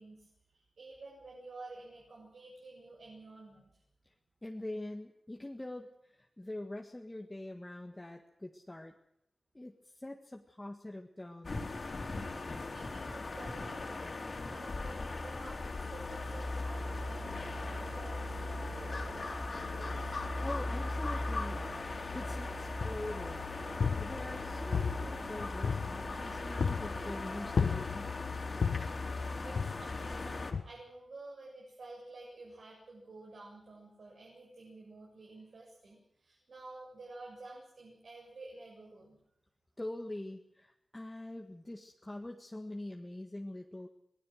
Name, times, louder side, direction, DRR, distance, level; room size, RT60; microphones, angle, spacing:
voice 1, 0.0-3.8 12.6-14.2 14.5-20.2 29.4-39.2, right 2 dB, 70° right, -2 dB, 7.8 m, -51 dB
voice 2, 4.4-8.9 9.5-11.5 20.3-21.6 22.1-28.1 39.8-43.9, left 1 dB, 15° left, 3 dB, 1.7 m, -44 dB
sound 1, 11.4-30.5, left 2 dB, 50° left, 3.5 m, -38 dB
sound 2, 22.8-23.2 23.6-24.4 24.7-26.2 26.6-27.0 27.6-28.2 28.6-29.0 29.5-30.1 30.5-30.6, left 6 dB, 80° left, 1.3 m, -33 dB
26.0 x 19.5 x 6.5 m, 0.76 s
wide cardioid pair, 130°, 0 cm